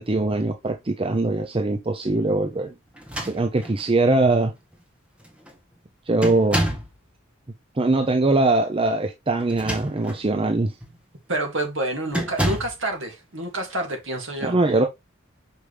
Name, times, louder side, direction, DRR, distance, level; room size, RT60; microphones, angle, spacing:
voice 1, 0.0-2.7 3.2-4.5 6.1-6.6 7.8-10.7 14.4-14.9, right 2 dB, 25° right, 0.6 m, -22 dB
sound 1, 2.9-3.9 4.7-4.8 5.2-5.6 6.2-7.0 9.4-10.2 10.8-11.0 12.1-12.8, equal, 5° right, 1.5 m, -28 dB
voice 2, 11.3-14.6, right 1 dB, 65° right, 2.4 m, -28 dB
6.1 x 4.9 x 3.4 m
head